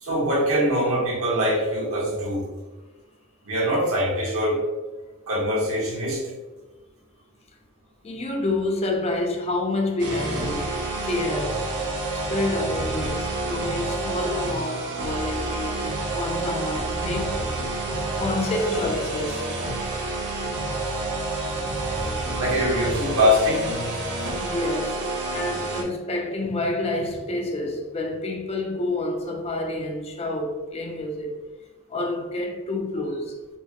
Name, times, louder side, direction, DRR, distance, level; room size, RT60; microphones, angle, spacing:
voice 1, 0.0-2.4 3.5-4.6 5.3-6.2 22.4-23.6, equal, 80° right, 1.1 m, -23 dB
voice 2, 8.0-11.7 12.1-17.4 17.7-19.5 20.8-20.9 24.4-31.4 31.9-33.4, left 2 dB, 30° left, 0.4 m, -28 dB
sound 1, 10.0-25.8, right 2 dB, 55° right, 0.7 m, -28 dB
4.3 x 2.1 x 2.9 m
head